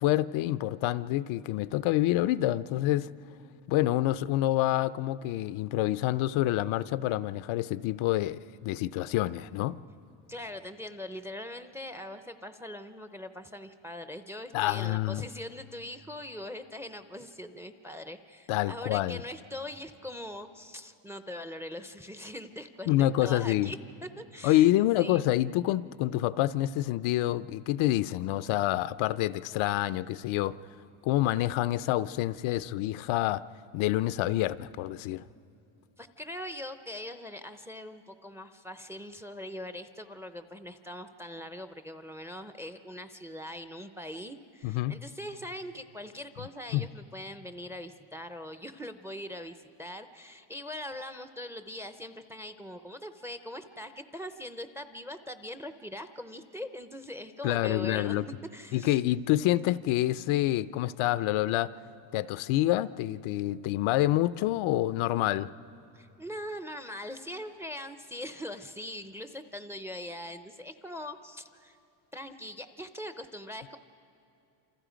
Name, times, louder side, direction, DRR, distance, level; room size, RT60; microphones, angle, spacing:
voice 1, 0.0-3.1 3.7-9.8 14.5-15.2 18.5-19.2 22.9-23.7 24.4-30.5 31.0-33.4 33.7-35.2 44.6-45.0 46.7-46.9 57.4-58.3 58.7-61.7 62.1-65.5, left 15 dB, 75° left, 15 dB, 0.6 m, -27 dB
voice 2, 10.3-25.2 36.0-58.2 58.5-59.0 65.9-71.8 72.1-73.8, left 1 dB, 5° right, 9 dB, 0.5 m, -42 dB
28.0 x 26.5 x 5.1 m, 2.7 s
cardioid pair, 150°, 49 cm